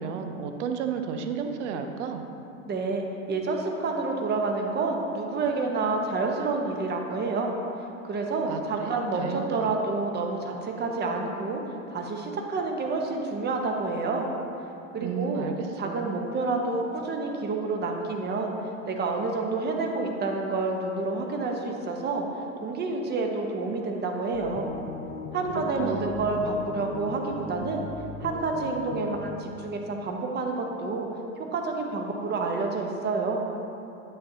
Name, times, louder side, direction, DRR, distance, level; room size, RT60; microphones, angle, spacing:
voice 1, 0.0-2.2 8.4-9.8 15.0-16.1 25.5-26.3, right 6 dB, 60° right, 6 dB, 0.8 m, -33 dB
voice 2, 2.7-7.5 8.0-11.6 11.9-14.3 14.9-15.5 15.8-18.5 18.9-22.2 22.6-24.7 25.3-27.8 28.2-31.1 31.5-33.4, right 3 dB, 25° right, 2 dB, 1.1 m, -29 dB
sound 1, 24.3-29.4, left 4 dB, 20° left, 0.5 m, -38 dB
9.7 x 7.6 x 2.9 m, 2.8 s
hypercardioid pair, 100°, 40 cm